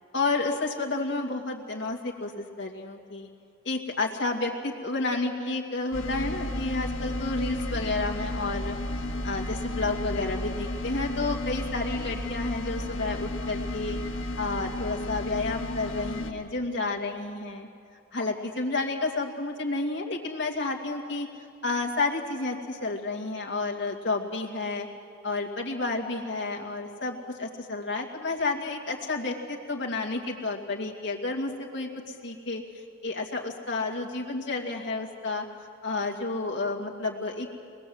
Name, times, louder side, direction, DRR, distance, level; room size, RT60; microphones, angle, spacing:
voice 1, 0.1-3.3 3.6-8.7 9.2-14.0 14.4-17.7 18.1-21.3 21.6-24.9 25.2-32.6 33.0-35.5 35.8-37.5, left 3 dB, 60° left, 1 dB, 2.3 m, -31 dB
sound 1, 5.9-16.3, left 1 dB, 85° left, 1.9 m, -33 dB
23.5 x 20.5 x 7.9 m, 2.4 s
head